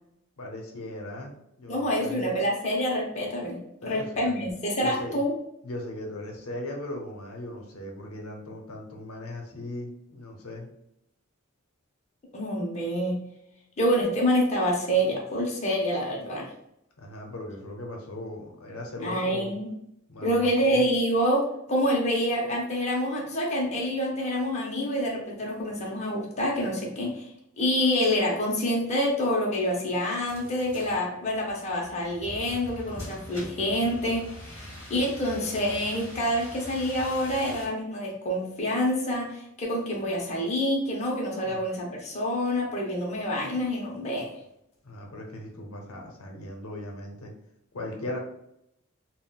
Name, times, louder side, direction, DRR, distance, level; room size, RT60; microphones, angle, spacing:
voice 1, 0.4-2.4 3.8-4.5 4.8-5.2 5.6-10.7 17.0-19.6 20.1-20.9 41.4-41.6 44.8-47.3 47.7-48.2, left 1 dB, 85° left, 1 dB, 0.7 m, -38 dB
voice 2, 1.7-5.4 12.3-13.2 13.8-16.5 19.0-19.7 20.2-27.3 27.6-44.3, equal, 30° left, -2 dB, 0.6 m, -27 dB
sound 1, 30.3-37.7, equal, 15° left, 1.3 m, -43 dB
3.7 x 2.1 x 2.2 m, 0.79 s
head